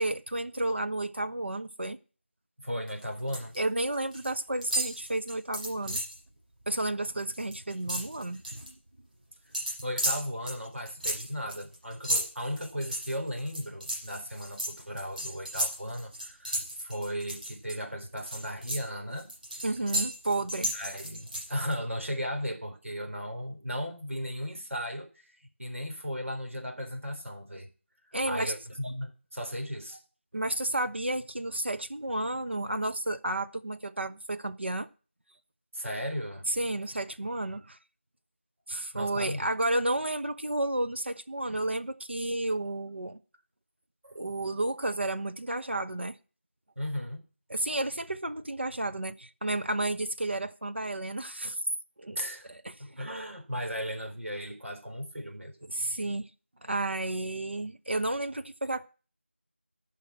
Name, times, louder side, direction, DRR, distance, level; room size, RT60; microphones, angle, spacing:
voice 1, 0.0-2.0 3.6-6.0 6.7-8.7 19.6-20.7 28.1-28.5 30.3-34.9 36.5-37.8 38.7-43.2 44.1-46.2 47.5-51.6 52.0-52.2 52.6-52.7 55.7-56.3 56.6-58.8, right 2 dB, 60° right, 1.1 m, -31 dB
voice 2, 2.6-3.5 9.8-19.3 20.7-27.7 28.0-30.0 35.7-36.5 38.9-39.5 44.0-44.2 46.8-47.2 52.2-52.5 52.8-55.7, equal, 85° right, 3.8 m, -36 dB
sound 1, 2.9-3.6 3.8-4.3 4.6-6.2 6.6-6.8 7.1-8.7 9.5-17.8 18.2-21.8, right 1 dB, 35° right, 7.9 m, -34 dB
14.0 x 5.9 x 7.5 m
figure-of-eight pair, 175°, 7 cm